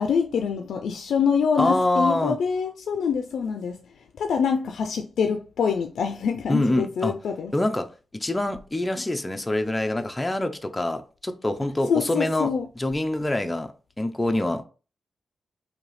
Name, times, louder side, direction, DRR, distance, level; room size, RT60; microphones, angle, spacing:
voice 1, 0.0-3.8 4.1-7.5 11.9-12.7, left 6 dB, 90° left, 0.3 m, -25 dB
voice 2, 1.6-2.4 6.5-7.1 7.5-7.9 8.1-12.5 12.8-13.7 14.0-14.6, left 1 dB, 15° left, 0.4 m, -25 dB
3.2 x 2.7 x 4.0 m
wide cardioid pair, 145°, 0 cm